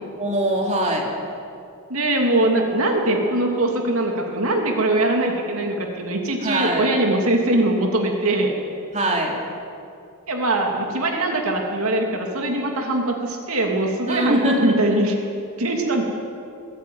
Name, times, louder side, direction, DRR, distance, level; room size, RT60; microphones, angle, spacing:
voice 1, 0.2-1.1 6.4-6.9 8.9-9.4 14.1-15.0, right 1 dB, 35° right, 0 dB, 3.2 m, -23 dB
voice 2, 1.9-8.5 10.3-15.1 15.6-16.0, right 1 dB, 70° right, 1 dB, 2.8 m, -21 dB
22.5 x 15.5 x 9.5 m, 2.5 s
head